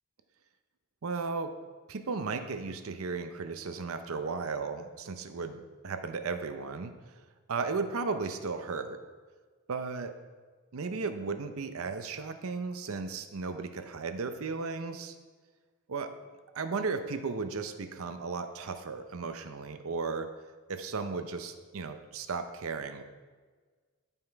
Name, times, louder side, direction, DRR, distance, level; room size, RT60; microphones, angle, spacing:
voice 1, 1.0-1.5 1.9-7.2 7.5-9.0 9.7-10.2 10.7-15.2 15.9-16.1 16.5-20.3 20.7-23.0, right 4 dB, 75° right, 8 dB, 0.6 m, -35 dB
10.0 x 5.5 x 4.6 m, 1.4 s
head